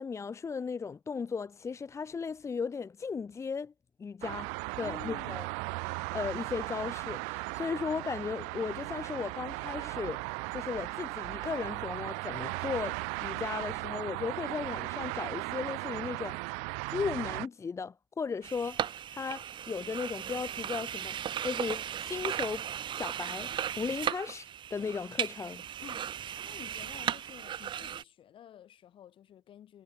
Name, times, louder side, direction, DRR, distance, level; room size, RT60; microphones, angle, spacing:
voice 1, 0.0-3.7 4.0-4.5 4.8-5.4 6.1-10.2 10.5-16.4 16.9-21.2 21.4-25.6, left 5 dB, 25° left, 1.3 m, -36 dB
sound 1, 4.2-17.5, right 38 dB, 70° right, 0.4 m, -37 dB
voice 2, 4.8-5.4 25.8-26.2 26.4-29.8, left 10 dB, 45° left, 3.4 m, -51 dB
sound 2, 18.4-28.0, right 9 dB, 40° right, 1.5 m, -36 dB
supercardioid pair, 100°, 12 cm